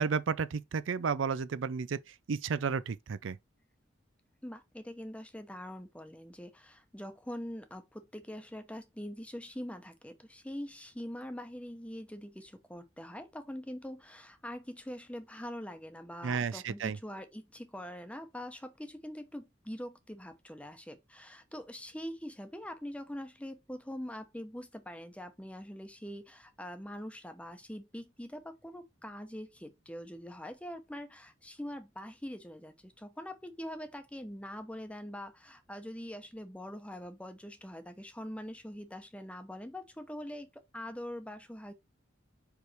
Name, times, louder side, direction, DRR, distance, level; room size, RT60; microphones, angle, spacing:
voice 1, 0.0-2.0 2.3-3.4 16.2-17.0, right 5 dB, 80° right, 0.5 m, -32 dB
voice 2, 4.4-41.7, equal, 5° left, 0.9 m, -43 dB
5.1 x 4.8 x 4.5 m
head